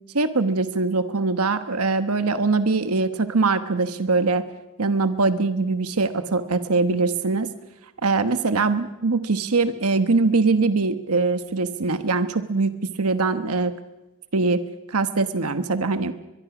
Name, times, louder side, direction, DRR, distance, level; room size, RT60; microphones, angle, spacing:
voice 1, 0.1-4.4 4.8-7.5 8.0-12.7 13.0-13.7 14.3-14.6 14.9-16.1, right 3 dB, 75° right, 10 dB, 1.2 m, -22 dB
24.0 x 22.0 x 6.0 m, 1.0 s
head